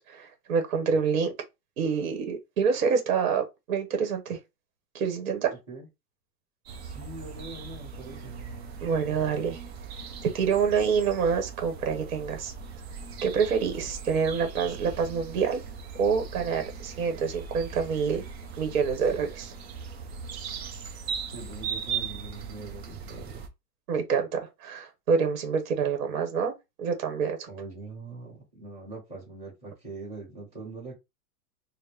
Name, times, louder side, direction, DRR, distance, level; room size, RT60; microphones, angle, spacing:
voice 1, 0.0-1.3 1.8-4.4 4.9-5.5 8.8-9.6 10.2-12.5 13.2-15.6 16.0-18.2 18.6-19.5 23.9-26.5 26.8-27.5, right 6 dB, 60° right, 1.2 m, -27 dB
sound 1, 6.7-23.5, right 6 dB, 45° right, 0.7 m, -39 dB
voice 2, 6.8-8.3 21.3-23.4 27.5-30.9, right 3 dB, 15° right, 1.6 m, -42 dB
4.1 x 2.1 x 3.5 m
supercardioid pair, 175°, 47 cm